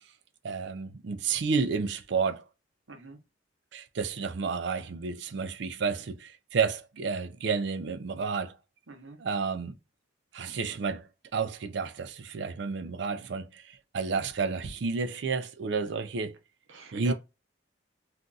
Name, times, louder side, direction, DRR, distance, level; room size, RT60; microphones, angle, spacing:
voice 1, 0.4-2.4 3.7-8.6 9.2-9.7 10.3-11.0 11.3-13.6 13.9-16.3 16.9-17.1, right 5 dB, 60° right, 0.4 m, -31 dB
voice 2, 2.9-3.2 8.9-9.2 16.7-17.1, right 2 dB, 80° right, 0.8 m, -42 dB
2.6 x 2.3 x 3.8 m
head